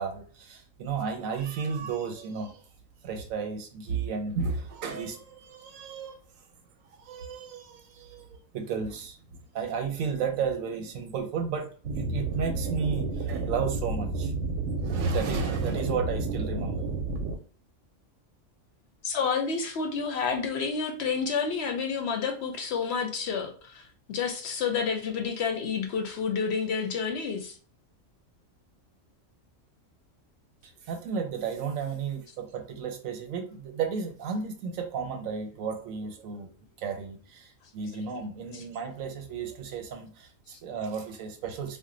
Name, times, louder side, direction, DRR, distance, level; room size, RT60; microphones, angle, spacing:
voice 1, 0.0-2.6 3.0-6.2 6.8-14.3 14.8-16.8 30.6-41.8, right 5 dB, 90° right, 1.1 m, -33 dB
sound 1, 11.8-17.4, right 3 dB, 70° right, 0.9 m, -31 dB
voice 2, 19.0-27.6 38.5-38.6, left 5 dB, 65° left, 0.7 m, -29 dB
2.5 x 2.1 x 3.7 m
omnidirectional pair, 1.4 m